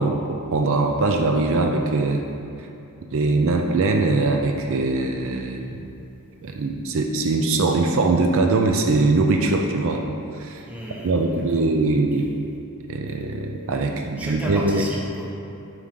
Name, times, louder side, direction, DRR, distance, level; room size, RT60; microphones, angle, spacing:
voice 1, 0.0-2.3 3.1-5.8 6.4-10.0 10.4-10.7 11.0-12.3 12.9-14.9, right 3 dB, 60° right, 3 dB, 0.4 m, -21 dB
voice 2, 10.6-11.7 12.2-12.3 14.2-15.4, equal, 5° right, -4 dB, 0.9 m, -35 dB
7.6 x 4.8 x 3.8 m, 2.8 s
head